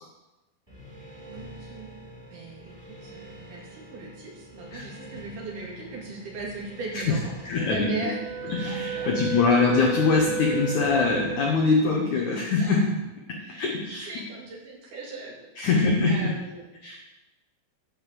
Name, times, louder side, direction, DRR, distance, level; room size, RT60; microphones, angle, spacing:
sound 1, 0.7-12.0, equal, 5° right, 2.8 m, -46 dB
voice 1, 1.3-1.9 2.3-8.2 8.7-9.5 12.4-12.8 13.3-16.7, right 3 dB, 55° right, -3 dB, 3.6 m, -39 dB
voice 2, 7.4-8.1 8.5-13.0 13.3-14.1 15.6-16.3 16.8-17.0, left 4 dB, 60° left, -1 dB, 2.2 m, -23 dB
Wind instrument woodwind instrument, 7.6-11.6, right 6 dB, 75° right, 2.8 m, -33 dB
10.5 x 5.6 x 7.6 m, 1.0 s
omnidirectional pair, 4.6 m